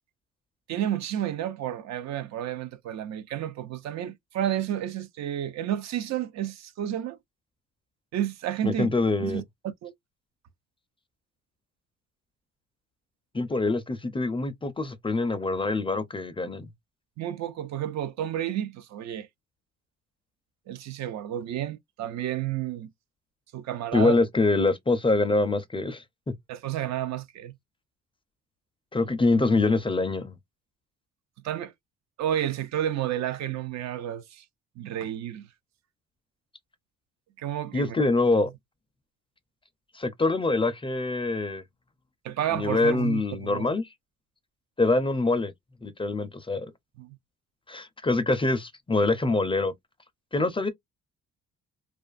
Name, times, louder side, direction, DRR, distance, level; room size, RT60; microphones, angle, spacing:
voice 1, 0.7-7.2 8.1-8.9 9.2-9.4 9.8-9.9 17.2-19.3 20.7-22.9 23.5-24.2 26.5-27.5 31.4-31.7 32.2-34.4 34.8-35.5 37.4-38.0 42.2-43.7 47.0-47.2, right 11 dB, 65° right, 0.4 m, -31 dB
voice 2, 8.6-9.4 13.3-16.7 23.9-26.0 28.9-30.4 37.7-38.5 40.0-41.6 42.5-43.8 44.8-45.5 45.8-46.7 47.7-49.7 50.3-50.7, left 3 dB, 20° left, 0.4 m, -25 dB
2.4 x 2.3 x 2.3 m
cardioid pair, 90°, 30 cm